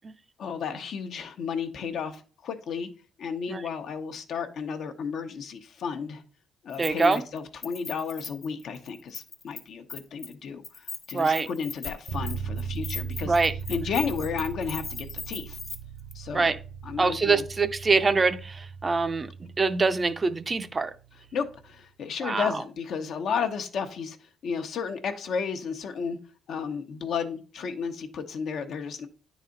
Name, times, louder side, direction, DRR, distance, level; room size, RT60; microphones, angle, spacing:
voice 1, 0.4-2.9 3.2-6.2 6.6-15.6 16.1-16.5 16.8-17.4 21.3-26.2 26.5-29.1, left 6 dB, 70° left, 0.9 m, -33 dB
Keys jangling, 6.7-7.4 7.6-9.6 9.9-10.3 10.6-15.8 16.1-16.2, left 5 dB, 45° left, 1.3 m, -39 dB
voice 2, 6.8-7.2 11.1-11.5 13.2-13.5 16.3-16.6 17.0-20.9 22.2-22.5, right 4 dB, 30° right, 0.5 m, -24 dB
sound 1, 12.1-21.8, right 6 dB, 70° right, 0.8 m, -38 dB
9.4 x 4.1 x 3.8 m
cardioid pair, 90°, 0 cm